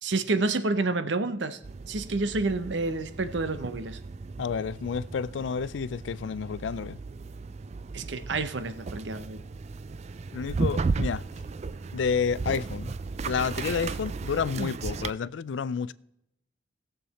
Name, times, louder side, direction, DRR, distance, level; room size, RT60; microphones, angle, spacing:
voice 1, 0.0-1.6 1.9-4.0 7.9-9.4, right 3 dB, 85° right, 0.8 m, -29 dB
sound 1, 1.6-15.1, right 4 dB, 35° right, 0.3 m, -35 dB
voice 2, 4.4-7.0 10.3-11.2 11.9-12.9 13.3-15.9, left 6 dB, 85° left, 0.4 m, -30 dB
18.0 x 7.2 x 4.2 m
head